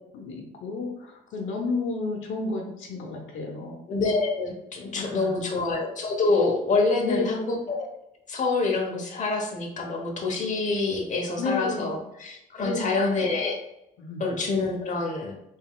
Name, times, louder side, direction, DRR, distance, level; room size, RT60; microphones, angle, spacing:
voice 1, 0.1-3.8 4.8-5.6 7.0-7.6 11.4-11.9 12.6-13.3 14.0-14.2, left 3 dB, 80° left, 1 dB, 0.8 m, -32 dB
voice 2, 3.9-7.9 8.3-13.6 14.2-15.4, left 3 dB, 40° left, 0 dB, 1.0 m, -26 dB
3.9 x 3.5 x 2.3 m, 0.87 s
cardioid pair, 90°, 20 cm